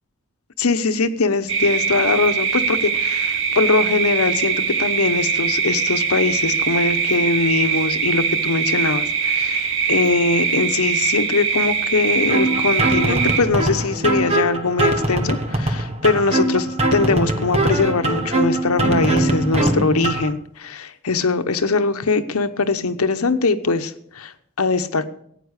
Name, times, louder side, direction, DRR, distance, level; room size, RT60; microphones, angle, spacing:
voice 1, 0.6-25.1, left 3 dB, 85° left, 10 dB, 1.0 m, -21 dB
sound 1, 1.5-13.4, right 6 dB, 60° right, 1.4 m, -22 dB
sound 2, 12.3-20.3, right 1 dB, 30° right, 1.2 m, -21 dB
14.5 x 9.2 x 6.5 m, 0.67 s
head